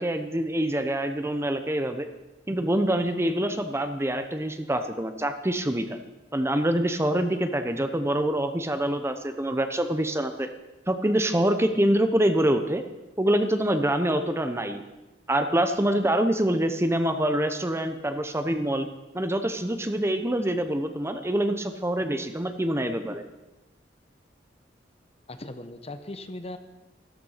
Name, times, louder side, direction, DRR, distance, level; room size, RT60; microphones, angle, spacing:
voice 1, 0.0-2.1 2.5-6.0 6.3-10.5 10.9-12.8 13.2-14.8 15.3-18.9 19.1-23.2, right 1 dB, 15° right, 8 dB, 0.9 m, -25 dB
voice 2, 25.3-26.6, left 2 dB, 35° left, 9 dB, 1.0 m, -38 dB
14.0 x 13.5 x 5.7 m, 1.0 s
head